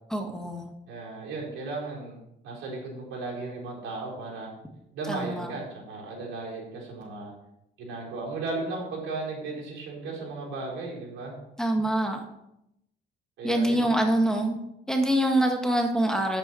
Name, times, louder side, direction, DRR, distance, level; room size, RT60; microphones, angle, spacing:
voice 1, 0.1-0.7 5.1-5.5 11.6-12.2 13.4-14.6 14.9-16.4, right 1 dB, 5° left, 3 dB, 1.6 m, -25 dB
voice 2, 0.9-2.2 2.4-4.5 4.9-7.3 7.8-11.3 13.4-13.9, right 3 dB, 85° right, -3 dB, 4.4 m, -35 dB
9.2 x 8.0 x 4.5 m, 0.82 s
cardioid pair, 90°, 20 cm